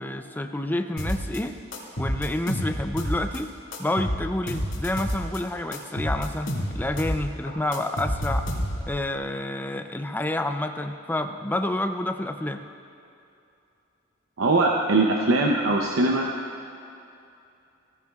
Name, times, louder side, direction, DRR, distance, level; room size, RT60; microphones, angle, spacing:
voice 1, 0.0-1.6 2.0-3.5 3.8-8.5 8.9-12.6, left 1 dB, 10° left, 7 dB, 0.5 m, -29 dB
sound 1, 1.0-1.4 1.7-3.4 3.7-5.4 5.7-7.2 7.5-9.0, equal, 85° left, 2.2 m, -29 dB
voice 2, 14.4-16.3, right 2 dB, 75° right, 0 dB, 0.8 m, -21 dB
17.5 x 14.0 x 2.4 m, 2.7 s
head